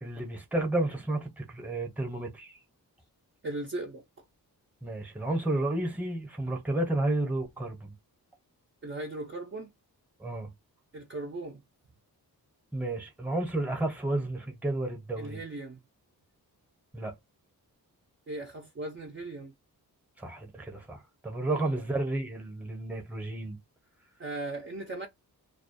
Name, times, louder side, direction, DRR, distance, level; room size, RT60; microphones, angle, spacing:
voice 1, 0.0-2.5 4.8-7.9 10.2-10.5 12.7-15.4 16.9-17.1 20.2-23.6, right 2 dB, 5° right, 0.7 m, -31 dB
voice 2, 3.4-4.0 8.8-9.7 10.9-11.6 15.2-15.8 18.3-19.5 21.5-21.8 24.2-25.1, right 2 dB, 35° right, 0.5 m, -38 dB
2.3 x 2.1 x 2.5 m
wide cardioid pair, 115°, 38 cm